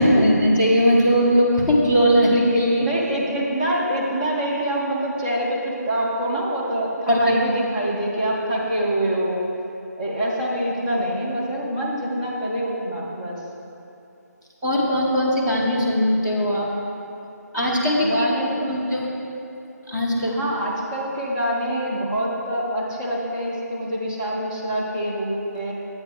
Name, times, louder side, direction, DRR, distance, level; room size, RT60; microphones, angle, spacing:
voice 1, 0.0-2.9 7.1-7.4 14.6-16.7 17.5-18.2 18.7-19.1 19.9-20.4, equal, 10° right, -8 dB, 1.0 m, -19 dB
voice 2, 2.8-9.4 10.0-13.4 18.0-18.7 20.3-25.8, right 1 dB, 25° right, -5 dB, 1.4 m, -25 dB
10.5 x 8.6 x 3.3 m, 2.7 s
figure-of-eight pair, 165°, 9 cm